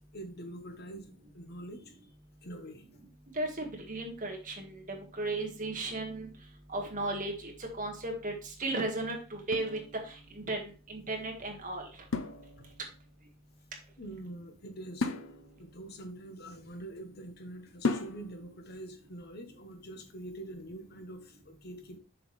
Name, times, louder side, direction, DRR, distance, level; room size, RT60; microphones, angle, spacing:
voice 1, 0.1-1.1 1.3-2.0 2.4-2.9 12.6-12.7 14.0-15.1 15.6-22.0, right 1 dB, 50° left, 7 dB, 1.1 m, -45 dB
voice 2, 3.3-6.3 6.7-11.9, right 2 dB, 40° right, 2 dB, 1.7 m, -35 dB
sound 1, 9.5-10.5 12.1-13.0 15.0-17.0 17.8-18.6, left 3 dB, 75° left, 0.7 m, -36 dB
7.1 x 6.1 x 3.3 m, 0.35 s
head